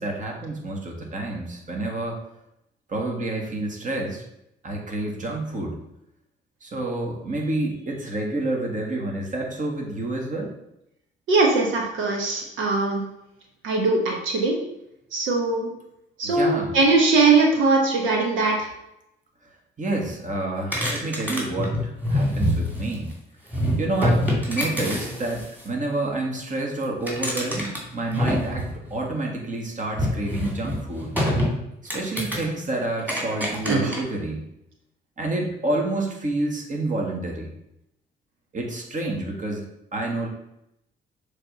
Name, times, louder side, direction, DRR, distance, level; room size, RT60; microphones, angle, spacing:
voice 1, 0.0-2.2 2.9-4.2 4.6-5.8 6.6-10.5 16.2-16.7 19.8-23.1 23.8-31.1 31.9-34.5 35.2-37.5 38.5-39.6 39.9-40.3, right 2 dB, 40° right, 0 dB, 1.7 m, -28 dB
voice 2, 11.3-13.0 13.6-14.5 15.1-15.7 16.2-18.7 33.6-33.9, right 3 dB, 90° right, 1 dB, 1.3 m, -21 dB
sound 1, 20.7-23.1 23.5-25.7 26.8-29.0 29.9-31.5 31.9-32.5 33.0-34.0, equal, 10° right, 2.7 m, -25 dB
6.7 x 3.5 x 5.3 m, 0.82 s
cardioid pair, 90°, 20 cm